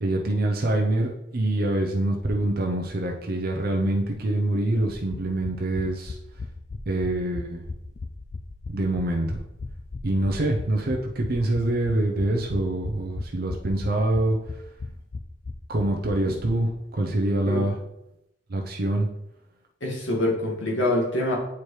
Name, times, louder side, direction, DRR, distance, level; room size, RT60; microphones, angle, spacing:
voice 1, 0.0-6.2 6.9-7.6 8.7-9.4 10.0-14.6 15.7-17.8 18.5-19.1, right 1 dB, 55° right, 1 dB, 0.7 m, -25 dB
sound 1, 4.9-16.5 16.8-16.9 17.1-17.2, left 3 dB, 40° left, 0.4 m, -37 dB
voice 2, 19.8-21.4, left 1 dB, 85° left, -3 dB, 2.0 m, -25 dB
8.3 x 4.5 x 3.2 m, 0.85 s
head